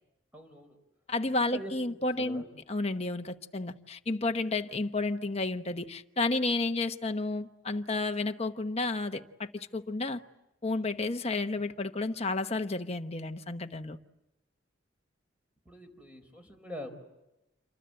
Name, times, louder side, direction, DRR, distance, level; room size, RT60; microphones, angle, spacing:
voice 1, 0.3-0.8 1.5-2.5 15.6-16.9, equal, 5° right, 4.3 m, -44 dB
voice 2, 1.1-2.4 2.7-10.2 10.6-14.0, left 2 dB, 30° left, 1.1 m, -31 dB
28.5 x 24.0 x 7.8 m
head